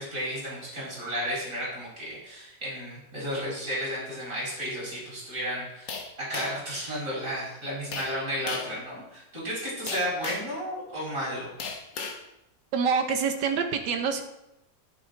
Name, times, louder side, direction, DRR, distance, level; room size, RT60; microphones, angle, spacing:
voice 1, 0.0-11.5, equal, 45° right, -6 dB, 5.4 m, -33 dB
sound 1, 5.9-6.7 7.9-8.2 8.5-8.8 9.9-10.6 11.6-12.2, left 4 dB, 80° left, 2.0 m, -35 dB
voice 2, 12.7-14.2, right 6 dB, 80° right, 5 dB, 1.7 m, -26 dB
11.0 x 10.0 x 4.0 m, 0.89 s
omnidirectional pair, 1.9 m